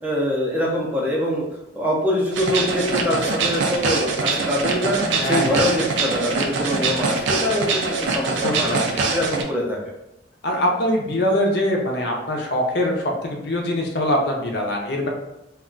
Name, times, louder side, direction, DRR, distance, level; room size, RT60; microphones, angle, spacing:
voice 1, 0.0-1.4 1.7-8.7 9.1-9.8, left 1 dB, 10° right, -3 dB, 0.5 m, -24 dB
sound 1, 2.3-9.4, right 3 dB, 75° right, 0.4 m, -23 dB
voice 2, 5.2-5.9 8.4-9.0 10.4-12.9 13.2-15.1, left 1 dB, 60° left, 0 dB, 0.5 m, -23 dB
2.3 x 2.2 x 3.7 m, 0.87 s
head